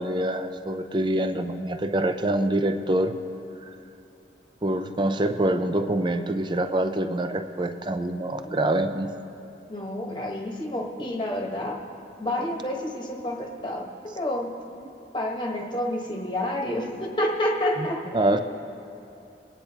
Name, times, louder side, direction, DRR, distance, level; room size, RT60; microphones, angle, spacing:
voice 1, 0.0-3.1 3.6-3.7 4.6-9.2 17.8-17.9 18.1-18.4, right 1 dB, 25° right, 8 dB, 0.5 m, -25 dB
voice 2, 9.7-11.8 12.2-14.6 15.1-18.0, left 1 dB, 25° left, 0 dB, 1.2 m, -29 dB
25.0 x 9.9 x 2.9 m, 2.7 s
head